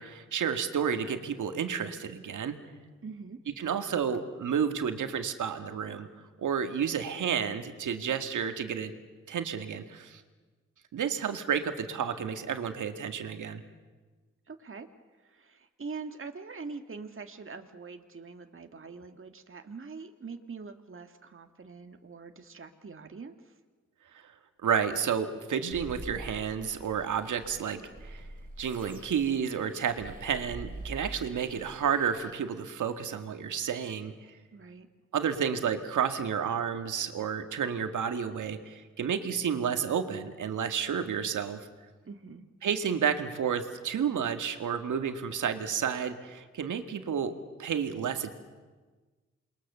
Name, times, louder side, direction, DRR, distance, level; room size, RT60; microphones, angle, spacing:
voice 1, 0.0-2.6 3.6-6.1 6.4-8.9 9.3-10.2 10.9-13.6 24.1-24.3 24.6-28.3 28.6-34.1 35.1-41.6 42.6-47.3 47.6-48.3, right 7 dB, 75° right, 7 dB, 2.0 m, -31 dB
voice 2, 3.0-3.4 14.5-14.9 15.2-23.6 34.5-34.9 42.0-42.4, right 4 dB, 40° right, 6 dB, 1.9 m, -44 dB
sound 1, 25.7-32.3, right 1 dB, 25° right, 4.8 m, -45 dB
28.0 x 21.5 x 6.9 m, 1.3 s
supercardioid pair, 40°, 31 cm